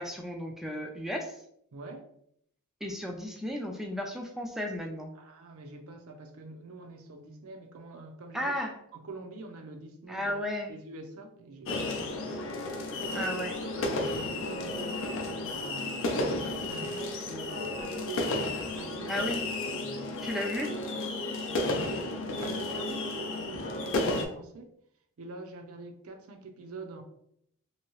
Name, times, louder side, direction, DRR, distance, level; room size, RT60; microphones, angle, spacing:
voice 1, 0.0-1.4 2.8-5.1 8.3-8.8 10.1-10.7 13.1-13.5 19.1-19.4 20.2-20.7, equal, ahead, 1 dB, 0.3 m, -34 dB
voice 2, 1.7-2.1 5.1-8.5 8.9-10.4 10.7-12.9 13.1-13.5 13.7-16.2 16.7-18.4 18.8-19.3 19.7-20.1 21.5-24.7 25.2-27.0, right 2 dB, 70° right, 5 dB, 0.5 m, -45 dB
sound 1, 11.7-24.3, left 2 dB, 65° left, 0.5 m, -33 dB
2.9 x 2.7 x 3.0 m, 0.71 s
head